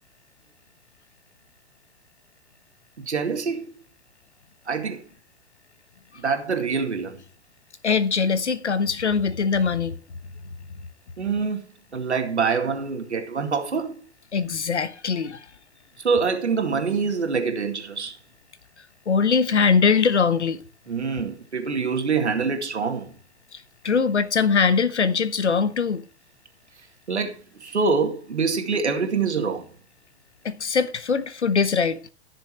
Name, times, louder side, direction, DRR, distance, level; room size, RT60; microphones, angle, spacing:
voice 1, 3.0-3.7 4.7-5.0 6.2-7.2 11.2-11.6 11.9-14.0 16.0-18.2 20.9-23.1 27.1-29.7, right 5 dB, 85° right, 2.3 m, -25 dB
voice 2, 7.8-10.0 14.3-15.4 19.1-20.6 23.5-26.0 30.4-32.0, left 5 dB, 85° left, 1.2 m, -22 dB
15.0 x 6.7 x 4.5 m
hypercardioid pair, 105°, 33 cm